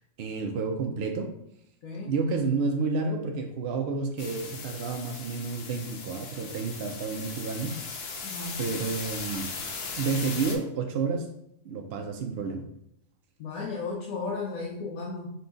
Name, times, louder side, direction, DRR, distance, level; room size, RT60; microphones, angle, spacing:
voice 1, 0.2-1.3 2.1-8.0 8.6-9.5 10.0-11.3 11.6-12.6, right 4 dB, 60° right, 3 dB, 0.7 m, -30 dB
voice 2, 1.8-2.1 8.2-8.6 13.4-15.3, left 4 dB, 80° left, -4 dB, 1.2 m, -34 dB
sound 1, 4.2-10.6, left 4 dB, 55° left, 0.8 m, -38 dB
5.4 x 2.3 x 3.9 m, 0.76 s
omnidirectional pair, 1.4 m